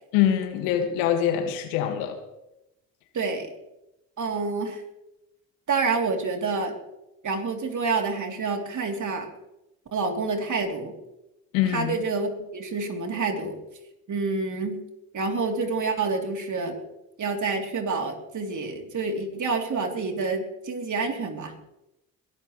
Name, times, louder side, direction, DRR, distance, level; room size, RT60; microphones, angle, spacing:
voice 1, 0.1-2.2 11.5-11.9, left 10 dB, 85° left, 6 dB, 2.0 m, -24 dB
voice 2, 3.1-3.5 4.2-4.8 5.7-6.8 7.2-9.3 9.9-10.9 11.7-13.6 14.1-14.8 15.1-16.8 17.2-21.6, right 4 dB, 50° right, 3 dB, 3.3 m, -28 dB
22.0 x 12.5 x 3.2 m, 0.90 s
hypercardioid pair, 55°, 39 cm